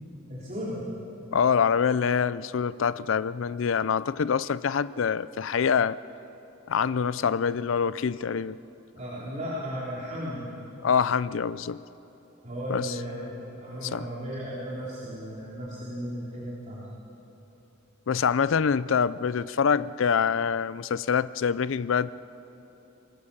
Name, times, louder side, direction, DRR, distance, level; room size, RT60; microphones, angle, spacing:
voice 1, 0.3-0.8 8.9-10.5 12.4-16.9, equal, 35° right, -8 dB, 3.7 m, -35 dB
voice 2, 1.3-6.0 6.7-8.6 10.8-11.8 12.7-12.9 13.9-14.0 18.1-22.1, left 6 dB, 70° left, 17 dB, 0.5 m, -25 dB
25.0 x 19.5 x 7.2 m, 3.0 s
head